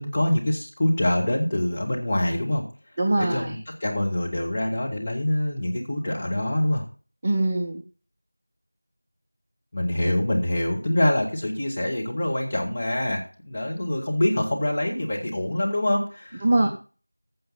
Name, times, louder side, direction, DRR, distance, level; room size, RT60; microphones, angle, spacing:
voice 1, 0.0-2.6 3.2-6.8 9.7-16.7, left 1 dB, 10° left, -4 dB, 1.5 m, -25 dB
voice 2, 3.0-3.6 7.2-7.8 16.4-16.7, right 2 dB, 15° right, 2 dB, 0.4 m, -22 dB
15.0 x 5.4 x 5.6 m, 0.37 s
figure-of-eight pair, 175°, 0 cm